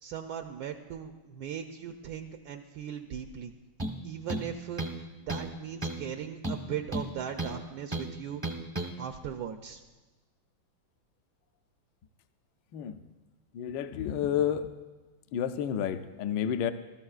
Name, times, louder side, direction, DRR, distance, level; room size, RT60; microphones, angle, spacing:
voice 1, 0.0-3.5 4.0-8.4 9.0-9.8, right 8 dB, 80° right, 6 dB, 0.8 m, -39 dB
sound 1, 3.8-4.0 4.3-5.0 5.3-5.5 5.8-6.1 6.4-7.6 7.9-8.1 8.4-8.9, right 1 dB, 30° right, 0.3 m, -33 dB
voice 2, 13.5-14.7 15.3-16.7, left 9 dB, 70° left, 9 dB, 1.1 m, -30 dB
20.5 x 13.0 x 2.4 m, 1.2 s
omnidirectional pair, 2.3 m